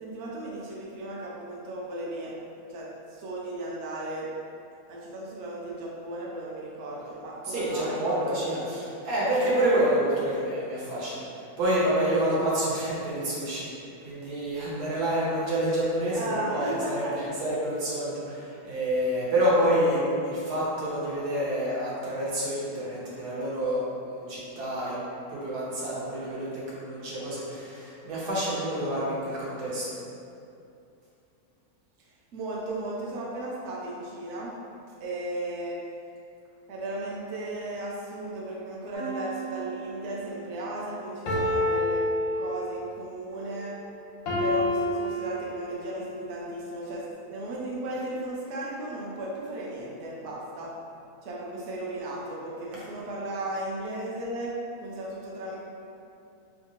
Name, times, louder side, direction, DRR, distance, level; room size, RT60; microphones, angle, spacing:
voice 1, 0.0-2.3 2.7-4.3 4.9-8.1 16.1-17.1 32.3-34.5 35.0-35.8 36.7-42.1 42.3-43.7 44.4-50.7 51.2-54.5 54.8-55.5, right 1 dB, 65° right, -5 dB, 0.7 m, -35 dB
voice 2, 7.4-11.2 11.6-24.9 25.3-30.0 52.7-52.8, right 1 dB, 80° right, -7 dB, 1.4 m, -28 dB
sound 1, 38.9-40.3 41.3-42.9 44.3-46.0 46.6-46.7, left 1 dB, 90° left, 1.3 m, -29 dB
3.3 x 2.7 x 2.9 m, 2.6 s
omnidirectional pair, 1.7 m